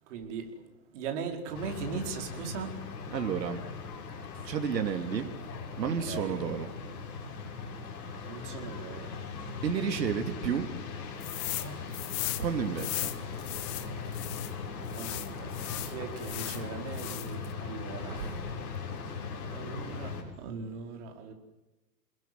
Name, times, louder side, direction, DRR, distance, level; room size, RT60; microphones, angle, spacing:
voice 1, 0.1-0.6 0.9-2.8 5.8-6.4 8.2-9.1 9.4-9.5 11.6-11.8 14.9-18.5 19.1-19.2 19.5-21.3, right 5 dB, 45° right, 4 dB, 4.8 m, -39 dB
sound 1, 1.5-20.2, left 5 dB, 60° left, 7.5 m, -39 dB
voice 2, 3.1-3.6 4.4-5.3 5.8-6.7 9.6-10.7 12.4-13.1, right 7 dB, 80° right, 6 dB, 3.3 m, -31 dB
sound 2, 11.2-11.7 11.9-14.5 14.9-16.6 16.9-17.5, left 18 dB, 15° left, 0.8 m, -37 dB
28.5 x 21.0 x 7.9 m, 1.0 s
hypercardioid pair, 160°, 50 cm